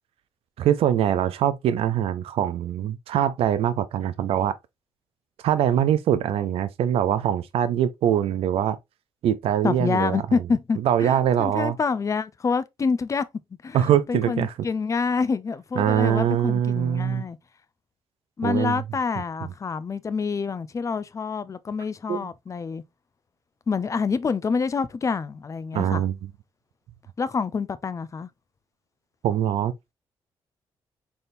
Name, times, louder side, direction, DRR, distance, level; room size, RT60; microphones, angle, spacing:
voice 1, 0.6-4.5 5.4-8.8 9.2-10.2 10.8-11.8 13.7-14.5 15.8-17.2 18.4-18.8 22.1-22.2 25.7-26.1 29.2-29.7, right 10 dB, 75° right, 0.4 m, -23 dB
voice 2, 9.6-13.2 13.6-17.4 18.4-22.8 23.7-26.0 27.2-28.3, left 5 dB, 30° left, 0.5 m, -27 dB
4.1 x 3.5 x 2.5 m
cardioid pair, 85°, 10 cm